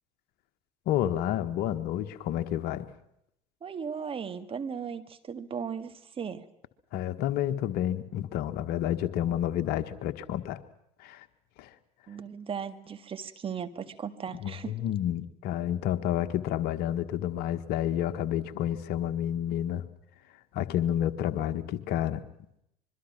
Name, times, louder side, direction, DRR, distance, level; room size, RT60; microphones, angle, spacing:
voice 1, 0.9-2.9 6.9-10.6 11.0-11.2 11.6-11.7 14.4-19.8 20.5-22.2, left 11 dB, 50° left, 10 dB, 1.6 m, -30 dB
voice 2, 3.6-6.4 12.1-14.7, right 7 dB, 25° right, 10 dB, 1.8 m, -37 dB
25.0 x 22.5 x 6.1 m, 0.79 s
figure-of-eight pair, 75°, 20 cm